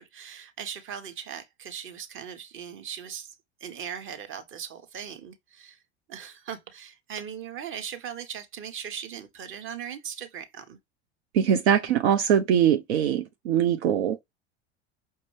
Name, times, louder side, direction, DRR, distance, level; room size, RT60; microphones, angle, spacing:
voice 1, 0.0-5.8 6.1-10.8, right 8 dB, 35° right, 1.1 m, -39 dB
voice 2, 11.3-14.2, right 9 dB, 75° right, 0.6 m, -22 dB
5.5 x 2.7 x 3.1 m
hypercardioid pair, 80°, 33 cm